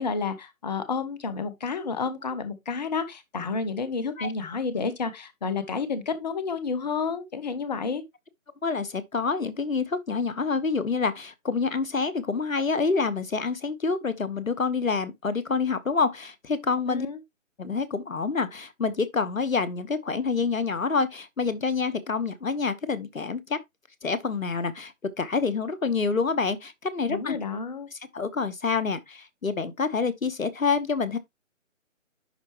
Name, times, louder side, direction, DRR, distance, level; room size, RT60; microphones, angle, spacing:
voice 1, 0.0-8.0 16.9-17.2 27.1-27.9, left 5 dB, 30° left, 0.9 m, -30 dB
voice 2, 8.6-17.1 17.6-23.6 24.0-27.4 28.1-31.2, left 4 dB, 75° left, 1.1 m, -27 dB
10.5 x 4.4 x 2.9 m
figure-of-eight pair, 145°, 41 cm